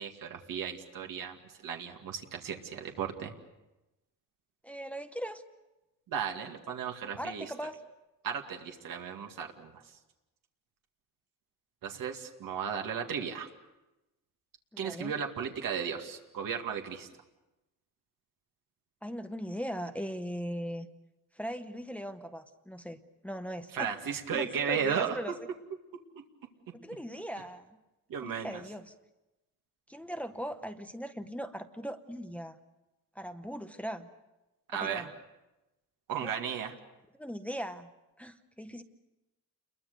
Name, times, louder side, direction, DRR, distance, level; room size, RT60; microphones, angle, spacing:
voice 1, 0.0-3.3 6.1-7.5 8.2-9.8 11.8-13.5 14.8-17.1 23.7-25.2 26.2-26.3 28.1-28.6 34.7-35.1 36.1-36.7, right 7 dB, 85° right, 3 dB, 2.3 m, -35 dB
voice 2, 4.6-5.4 7.2-7.8 14.7-15.1 19.0-20.9 21.3-23.9 24.3-25.3 26.7-27.7 28.2-28.9 29.9-32.6 33.1-34.1 34.7-35.1 36.2-36.3 37.1-37.9 38.2-38.8, equal, 5° left, 8 dB, 0.9 m, -39 dB
29.5 x 22.0 x 6.8 m, 1.0 s
wide cardioid pair, 180°, 33 cm